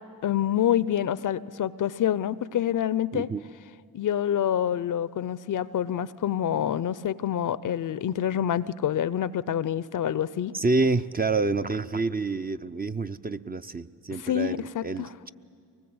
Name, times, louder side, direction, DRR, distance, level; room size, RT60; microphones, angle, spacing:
voice 1, 0.2-3.3 3.9-10.5 14.2-15.1, left 10 dB, 50° left, 18 dB, 0.6 m, -27 dB
voice 2, 3.1-3.4 10.5-15.3, right 3 dB, 25° right, 10 dB, 0.6 m, -28 dB
23.5 x 20.0 x 7.9 m, 2.3 s
supercardioid pair, 50°, 40 cm